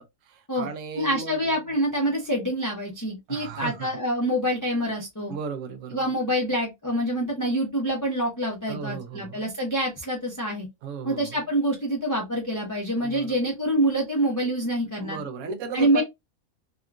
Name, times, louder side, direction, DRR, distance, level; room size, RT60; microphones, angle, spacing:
voice 1, 0.0-1.7 2.0-2.1 3.3-3.9 5.3-6.1 8.7-9.4 10.8-11.4 13.0-13.4 15.0-16.0, right 5 dB, 65° right, 0.9 m, -36 dB
voice 2, 1.0-5.3 5.9-10.7 11.0-15.2 15.7-16.0, right 1 dB, 20° left, 0.6 m, -26 dB
3.6 x 2.3 x 2.3 m
omnidirectional pair, 1.5 m